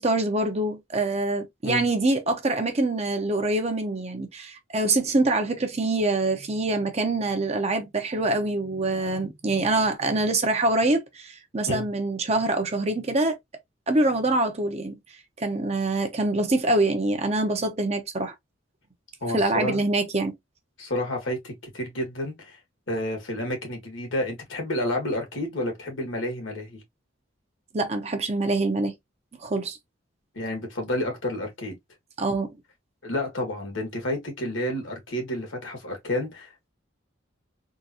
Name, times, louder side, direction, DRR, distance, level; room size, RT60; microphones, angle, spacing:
voice 1, 0.0-13.4 13.9-14.9 15.4-18.3 19.3-20.4 27.7-28.9 29.4-29.8 32.2-32.5, right 2 dB, 35° right, 0.7 m, -25 dB
voice 2, 19.2-19.9 20.8-22.6 22.9-26.8 30.3-31.8 33.0-36.7, left 1 dB, 80° left, 1.8 m, -30 dB
3.7 x 2.5 x 2.7 m
head